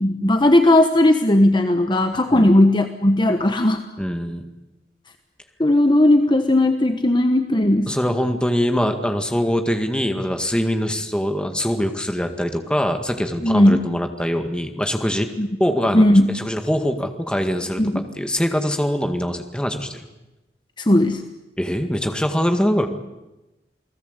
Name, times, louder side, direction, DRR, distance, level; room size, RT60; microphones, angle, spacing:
voice 1, 0.0-3.8 5.6-7.9 13.4-13.8 15.4-15.5 15.9-16.3 17.8-18.0 20.8-21.2, left 1 dB, 25° left, 7 dB, 1.2 m, -16 dB
voice 2, 4.0-4.5 7.9-15.3 15.6-20.0 21.6-22.9, equal, 5° left, 5 dB, 2.0 m, -23 dB
28.5 x 18.5 x 8.2 m, 1.0 s
head